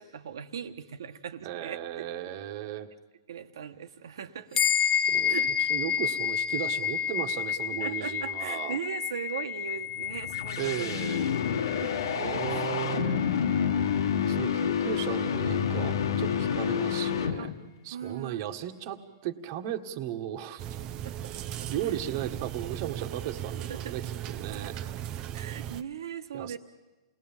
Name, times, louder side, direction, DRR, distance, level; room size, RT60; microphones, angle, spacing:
voice 1, 0.0-2.1 3.3-4.6 5.3-5.7 7.8-11.0 11.8-12.1 12.5-12.7 13.7-13.8 17.4-17.5 17.9-18.4 21.8-21.9 23.7-23.8 25.3-26.6, right 8 dB, 75° right, 9 dB, 1.5 m, -39 dB
voice 2, 1.4-2.9 5.1-8.8 10.6-11.4 12.2-13.2 14.3-17.5 17.8-20.6 21.7-24.8 26.3-26.6, right 12 dB, 45° right, 8 dB, 1.6 m, -36 dB
sound 1, 4.5-14.3, left 8 dB, 20° left, 0.8 m, -31 dB
sound 2, 9.9-17.7, left 8 dB, 80° left, 1.6 m, -28 dB
sound 3, 20.6-25.8, right 11 dB, 30° right, 0.7 m, -37 dB
29.0 x 19.5 x 7.4 m, 1.1 s
hypercardioid pair, 140°, 2 cm